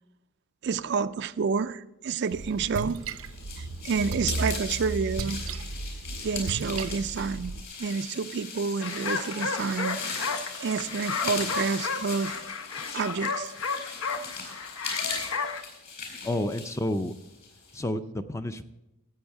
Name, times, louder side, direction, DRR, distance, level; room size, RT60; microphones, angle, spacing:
voice 1, 0.6-3.0 3.6-5.4 6.2-10.3 10.6-12.4 12.9-13.5, right 5 dB, 55° right, 0.4 m, -29 dB
Splash splatter, 2.3-7.6, right 3 dB, 85° right, 0.7 m, -35 dB
sound 1, 2.6-17.8, left 5 dB, 50° left, 4.3 m, -39 dB
sound 2, 8.8-15.6, left 5 dB, 70° left, 0.9 m, -33 dB
voice 2, 16.2-17.1 17.7-18.6, left 1 dB, 15° left, 0.5 m, -30 dB
14.0 x 8.6 x 4.6 m
head